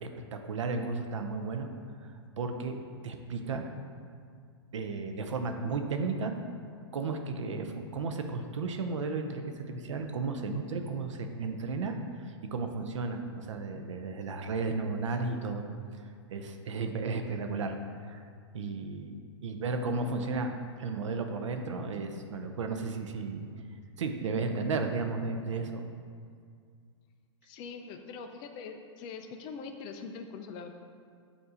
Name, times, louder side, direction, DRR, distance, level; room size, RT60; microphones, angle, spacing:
voice 1, 0.0-1.7 2.4-3.6 4.7-6.3 6.9-15.6 15.9-18.2 18.5-20.5 20.8-23.5 24.0-25.9, right 4 dB, 90° right, 6 dB, 0.6 m, -34 dB
voice 2, 27.4-30.7, left 5 dB, 30° left, 5 dB, 0.4 m, -43 dB
7.1 x 2.7 x 4.9 m, 2.2 s
hypercardioid pair, 140°, 15 cm